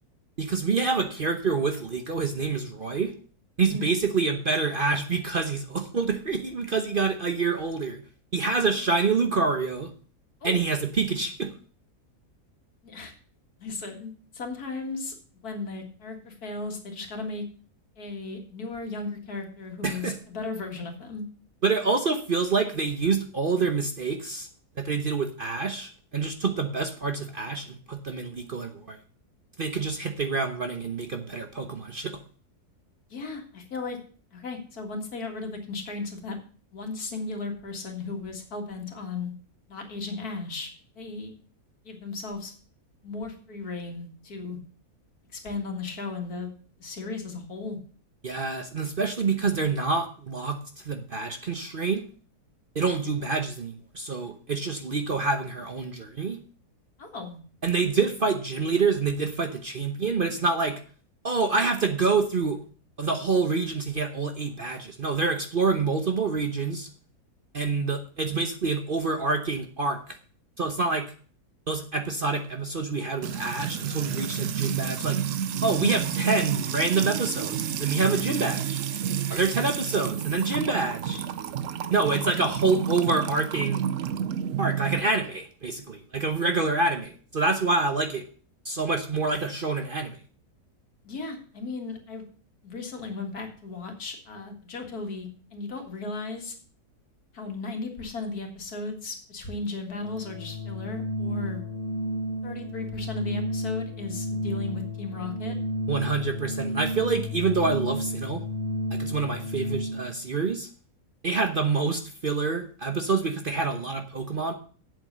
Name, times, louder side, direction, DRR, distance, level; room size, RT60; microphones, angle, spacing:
voice 1, 0.4-3.1 3.6-8.0 8.3-9.9 10.4-11.5 19.8-20.1 21.6-24.5 24.8-29.0 29.6-32.1 48.2-50.6 50.8-52.0 52.7-56.4 57.6-60.7 61.2-62.6 63.0-66.9 67.5-70.0 70.6-71.1 71.7-75.2 75.6-78.8 79.3-81.2 81.9-83.9 84.6-88.2 88.6-90.2 105.9-108.4 108.9-110.7 111.2-114.5, right 4 dB, 40° right, 6 dB, 0.9 m, -27 dB
voice 2, 13.6-15.2 15.4-17.4 18.0-21.2 33.1-34.0 34.3-36.4 36.7-39.3 39.7-41.3 41.8-42.5 43.0-44.6 45.3-46.5 46.8-47.8 57.0-57.4 79.3-79.4 82.1-82.2 91.0-92.2 92.6-96.6 97.3-101.6 102.4-105.5, left 3 dB, 70° left, 4 dB, 2.4 m, -36 dB
Music / Water tap faucet / Trickle dribble, 73.2-85.0, right 8 dB, 60° right, 1.0 m, -30 dB
Organ, 99.9-110.2, left 1 dB, 45° left, 0.5 m, -32 dB
8.2 x 7.6 x 6.6 m, 0.42 s
omnidirectional pair, 1.7 m